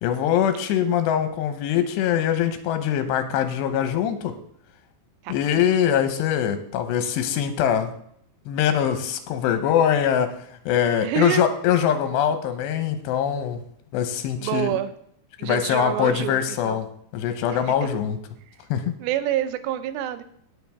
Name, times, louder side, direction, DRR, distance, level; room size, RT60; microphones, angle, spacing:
voice 1, 0.0-4.3 5.3-7.9 8.5-10.4 10.7-13.6 13.9-14.8 15.4-16.9 17.1-18.2 18.7-18.9, left 9 dB, 85° left, 9 dB, 3.1 m, -23 dB
voice 2, 11.0-11.5 14.4-14.9 15.4-16.8 17.5-17.7 19.0-20.2, right 12 dB, 90° right, 12 dB, 2.9 m, -27 dB
18.0 x 6.6 x 3.6 m, 0.69 s
omnidirectional pair, 4.9 m